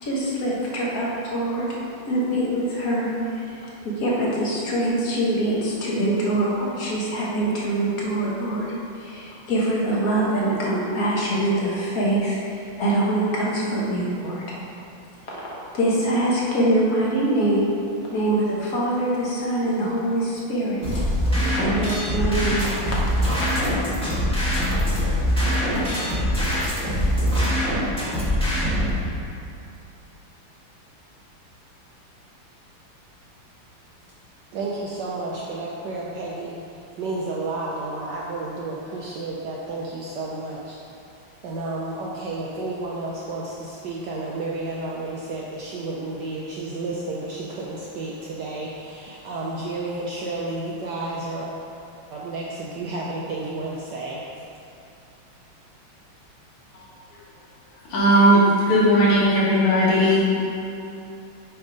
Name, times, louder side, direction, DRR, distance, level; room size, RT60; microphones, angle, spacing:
voice 1, 0.0-1.8 2.1-14.4 15.3-17.7 18.1-21.0 21.5-23.0 23.3-23.5, right 1 dB, 50° left, -5 dB, 1.4 m, -24 dB
sound 1, 20.8-28.9, equal, 5° left, 0.9 m, -23 dB
voice 2, 34.5-36.6 37.0-40.8 41.4-51.5 52.1-54.2, right 2 dB, 70° right, -4 dB, 1.0 m, -31 dB
voice 3, 57.9-60.5, equal, 80° left, -7 dB, 2.5 m, -17 dB
7.0 x 3.6 x 5.0 m, 2.6 s
omnidirectional pair, 2.4 m